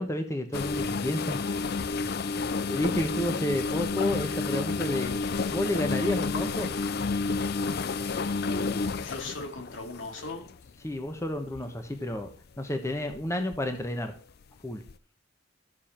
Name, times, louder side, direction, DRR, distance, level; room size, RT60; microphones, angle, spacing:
voice 1, 0.0-1.6 2.0-2.1 2.7-5.2 5.5-6.7 10.8-12.3 12.6-14.1 14.6-14.8, left 1 dB, 15° left, 6 dB, 1.2 m, -31 dB
sound 1, 0.5-10.7 11.4-11.6 12.1-12.3 13.1-13.6 13.9-14.0 14.9-15.0, left 4 dB, 55° left, 0.5 m, -30 dB
voice 2, 8.4-10.4, left 2 dB, 80° left, 3 dB, 2.7 m, -39 dB
14.0 x 7.1 x 4.4 m, 0.41 s
head